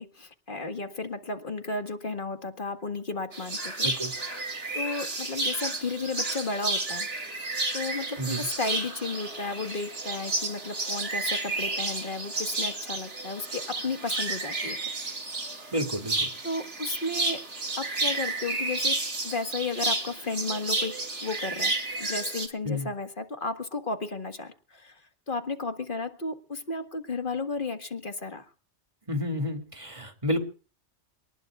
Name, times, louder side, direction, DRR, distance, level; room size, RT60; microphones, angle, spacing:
voice 1, 0.0-3.9 4.7-7.1 7.7-14.8 15.5-15.7 16.4-17.4 17.8-19.0 19.2-20.9 21.2-28.5, left 3 dB, 45° left, 7 dB, 1.8 m, -33 dB
sound 1, 3.3-22.5, right 2 dB, 85° right, 3.2 m, -31 dB
voice 2, 15.7-16.3 22.6-22.9 29.1-30.4, left 1 dB, 25° right, 5 dB, 2.7 m, -30 dB
28.0 x 20.0 x 2.5 m, 0.38 s
omnidirectional pair, 1.2 m